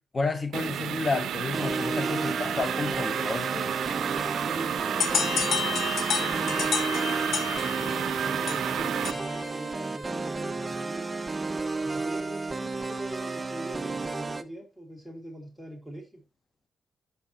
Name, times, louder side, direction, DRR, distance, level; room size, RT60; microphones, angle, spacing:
voice 1, 0.0-3.7, left 3 dB, 30° left, 0.8 m, -31 dB
sound 1, 0.5-9.1, right 10 dB, 90° right, 0.3 m, -31 dB
sound 2, 1.5-14.4, right 3 dB, 25° right, 0.4 m, -32 dB
voice 2, 1.9-2.3 4.4-7.2 7.6-11.3 11.8-16.2, right 1 dB, 5° left, 2.2 m, -42 dB
sound 3, 5.0-9.5, left 7 dB, 80° left, 0.6 m, -31 dB
6.4 x 5.4 x 2.9 m
cardioid pair, 105°, 0 cm